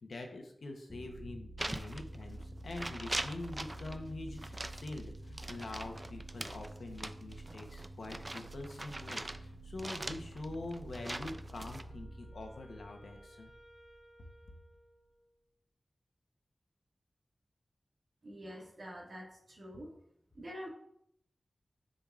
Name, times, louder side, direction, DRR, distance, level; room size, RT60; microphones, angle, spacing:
voice 1, 0.0-13.5, left 2 dB, 85° left, 3 dB, 0.9 m, -45 dB
sound 1, 0.9-14.3, right 1 dB, ahead, 1.0 m, -49 dB
sound 2, 1.6-2.4 2.7-4.0 4.4-9.4 9.8-11.8, right 1 dB, 25° right, 0.3 m, -42 dB
Wind instrument woodwind instrument, 11.1-15.5, equal, 55° left, 1.6 m, -61 dB
voice 2, 18.2-19.9 20.3-20.7, equal, 65° right, -4 dB, 1.8 m, -46 dB
7.2 x 5.3 x 2.4 m, 0.73 s
wide cardioid pair, 85°, 0 cm